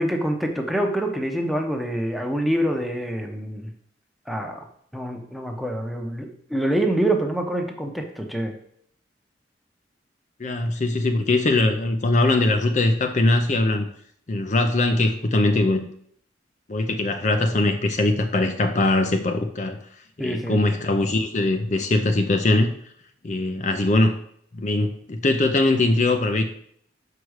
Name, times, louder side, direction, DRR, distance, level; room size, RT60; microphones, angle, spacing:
voice 1, 0.0-3.7 4.3-4.7 4.9-8.5 20.2-20.6, right 1 dB, ahead, 3 dB, 0.9 m, -26 dB
voice 2, 10.4-13.9 14.3-15.9 16.7-19.8 20.2-22.7 23.2-24.1 24.5-26.5, left 2 dB, 45° left, 6 dB, 0.6 m, -21 dB
6.0 x 4.8 x 6.3 m, 0.65 s
head